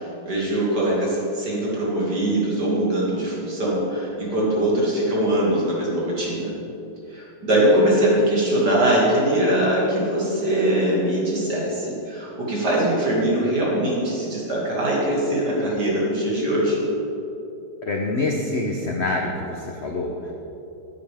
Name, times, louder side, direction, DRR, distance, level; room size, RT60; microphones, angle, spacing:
voice 1, 0.0-6.5 7.1-16.8, right 1 dB, 55° right, -5 dB, 2.9 m, -22 dB
voice 2, 17.8-20.3, left 2 dB, 50° left, 0 dB, 0.8 m, -26 dB
14.5 x 9.6 x 3.6 m, 2.8 s
omnidirectional pair, 2.1 m